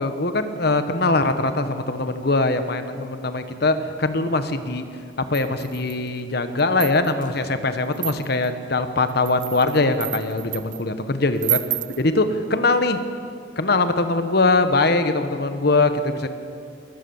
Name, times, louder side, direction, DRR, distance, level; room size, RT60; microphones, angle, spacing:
voice 1, 0.0-4.9 5.3-11.6 12.0-13.0 13.6-16.3, left 3 dB, 55° left, 9 dB, 1.3 m, -22 dB
sound 1, 5.3-6.1 6.6-7.3 7.9-8.5 9.1-10.8 11.4-12.0, right 15 dB, 45° right, 0.5 m, -29 dB
21.0 x 19.5 x 7.1 m, 2.4 s
head